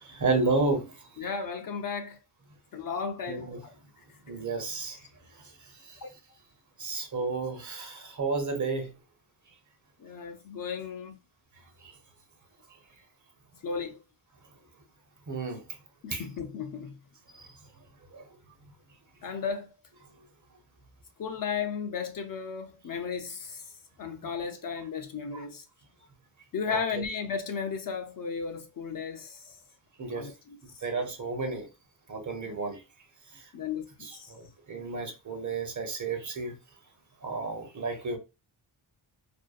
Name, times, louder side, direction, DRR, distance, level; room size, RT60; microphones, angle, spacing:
voice 1, 0.0-1.3 3.3-3.6 4.2-5.1 5.3-6.0 6.8-8.9 11.8-12.0 15.3-15.6 16.1-16.3 17.3-17.6 18.1-18.3 25.3-25.4 26.7-27.0 30.0-30.3 30.8-31.7 32.1-32.8 33.3-33.5 34.0-36.6 37.2-38.2, right 3 dB, 40° right, 0.7 m, -32 dB
voice 2, 1.2-2.2 2.7-3.5 6.0-6.1 10.0-11.2 13.6-14.0 16.0-17.0 19.2-19.7 21.2-23.6 24.0-25.6 26.5-29.6 30.1-30.8 32.5-32.6 33.5-34.3, left 6 dB, 45° left, 0.4 m, -35 dB
2.6 x 2.2 x 2.3 m
cardioid pair, 75°, 48 cm